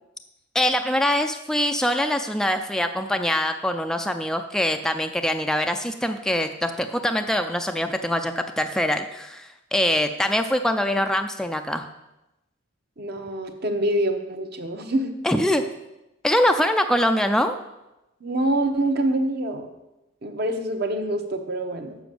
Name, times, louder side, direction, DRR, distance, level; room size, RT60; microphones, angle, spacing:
voice 1, 0.5-11.9 15.2-15.6 16.2-17.6, left 1 dB, 5° left, 6 dB, 0.4 m, -23 dB
voice 2, 13.0-15.1 18.2-19.7 20.2-22.0, right 1 dB, 50° right, 6 dB, 1.0 m, -25 dB
7.0 x 6.2 x 7.6 m, 0.95 s
head